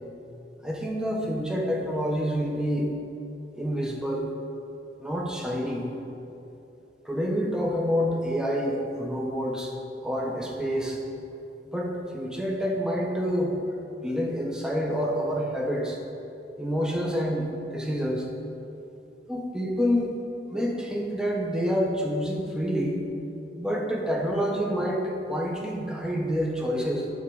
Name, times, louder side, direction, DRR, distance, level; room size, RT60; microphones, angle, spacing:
voice 1, 0.6-2.9 3.6-4.3 5.0-5.9 7.0-9.7 10.0-11.0 11.7-13.5 14.0-16.0 16.6-18.3 19.3-20.1 20.5-23.0 23.6-27.1, equal, 5° right, -1 dB, 1.0 m, -28 dB
10.5 x 3.7 x 6.3 m, 2.9 s
head